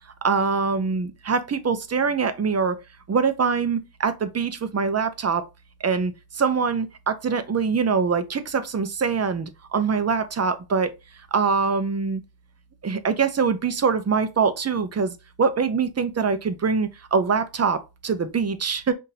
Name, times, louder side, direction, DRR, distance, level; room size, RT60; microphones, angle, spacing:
voice 1, 0.2-2.8 3.1-5.4 5.8-10.9 11.3-12.2 12.8-18.9, right 5 dB, 35° right, 0.6 m, -24 dB
5.7 x 2.6 x 2.7 m
wide cardioid pair, 90°, 44 cm